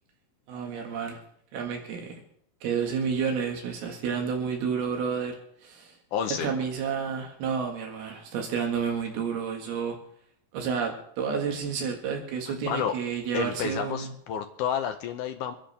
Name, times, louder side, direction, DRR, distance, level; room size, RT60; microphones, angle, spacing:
voice 1, 0.5-1.2 1.5-2.2 2.6-5.4 5.6-6.0 6.4-10.0 10.5-14.1, right 6 dB, 85° right, 2 dB, 3.7 m, -30 dB
voice 2, 6.1-6.5 12.5-13.0 13.3-15.6, left 8 dB, 75° left, 7 dB, 1.9 m, -30 dB
25.5 x 10.0 x 3.4 m, 0.70 s
omnidirectional pair, 4.3 m